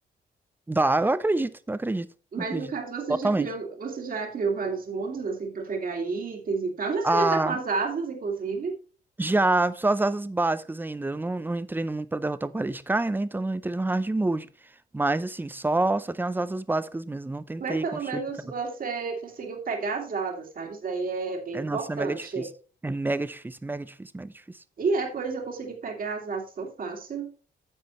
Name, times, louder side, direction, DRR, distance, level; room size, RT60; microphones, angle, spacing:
voice 1, 0.7-2.1 2.4-2.7 3.2-3.5 7.0-7.6 9.2-14.5 14.9-17.9 18.1-18.2 21.5-22.5 22.8-24.3, right 2 dB, 10° right, 0.5 m, -27 dB
voice 2, 2.3-8.7 17.6-22.5 24.8-27.3, right 4 dB, 50° right, 2.2 m, -31 dB
9.8 x 7.4 x 3.1 m
cardioid pair, 110°, 19 cm